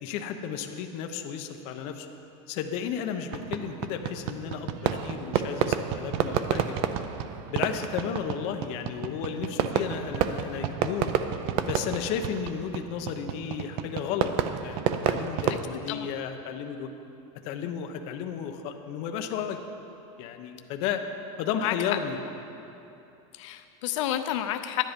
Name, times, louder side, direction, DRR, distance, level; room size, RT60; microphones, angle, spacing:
voice 1, 0.0-2.1 2.5-6.7 7.5-11.1 11.7-14.3 14.6-16.9 17.4-19.6 20.2-21.0 21.4-22.2, left 8 dB, 40° left, 6 dB, 0.7 m, -33 dB
Fireworks, 3.3-15.6, right 9 dB, 35° right, 0.4 m, -30 dB
voice 2, 23.3-24.8, left 12 dB, 80° left, 8 dB, 0.5 m, -30 dB
11.0 x 10.0 x 5.2 m, 2.9 s
supercardioid pair, 175°, 16 cm